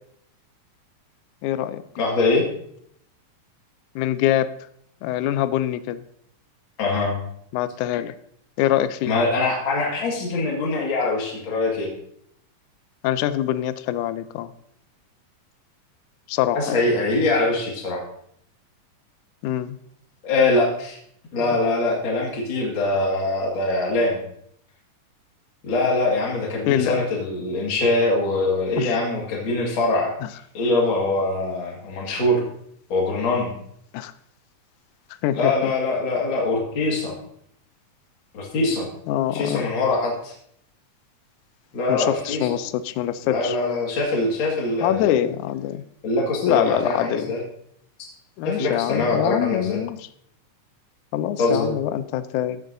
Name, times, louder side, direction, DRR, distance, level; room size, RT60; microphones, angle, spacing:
voice 1, 1.4-1.8 4.0-4.5 5.0-6.0 7.5-8.1 8.6-9.1 13.0-14.5 16.3-16.8 19.4-19.8 26.7-27.0 28.8-29.0 33.9-34.1 35.2-35.7 39.1-39.7 41.9-43.6 44.8-45.8 46.4-47.3 48.4-50.1 51.1-52.6, left 12 dB, 80° left, 13 dB, 1.9 m, -24 dB
voice 2, 2.0-2.5 6.8-7.2 9.0-11.9 16.5-18.0 20.2-21.0 21.3-24.2 25.6-30.1 30.5-32.4 32.9-33.5 35.4-37.2 38.3-38.9 39.3-40.3 41.7-42.5 43.2-45.2 46.0-47.4 48.0-48.1 48.4-49.8 51.4-51.7, left 2 dB, 45° left, -2 dB, 2.4 m, -23 dB
15.0 x 7.5 x 2.6 m, 0.69 s
omnidirectional pair, 3.6 m